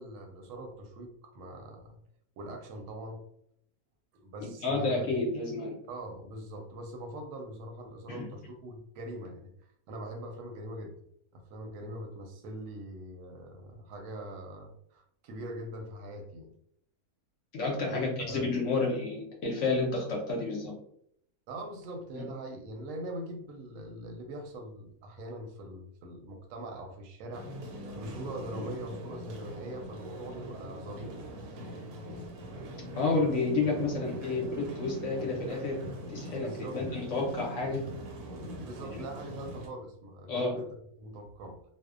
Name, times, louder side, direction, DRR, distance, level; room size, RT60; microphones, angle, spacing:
voice 1, 0.0-2.0 2.4-3.3 4.1-5.1 5.9-9.5 9.9-11.0 11.3-16.5 17.9-18.5 21.5-27.5 27.9-31.3 36.4-36.9 38.5-41.6, right 1 dB, 70° right, 3 dB, 0.9 m, -42 dB
voice 2, 4.4-5.8 8.1-8.2 17.5-20.7 22.1-22.2 28.5-28.7 33.0-35.8 36.1-37.8 40.3-40.6, left 3 dB, 65° left, -1 dB, 0.8 m, -30 dB
sound 1, 27.3-39.7, equal, 85° right, 1.1 m, -42 dB
2.6 x 2.0 x 2.3 m, 0.70 s
omnidirectional pair, 1.6 m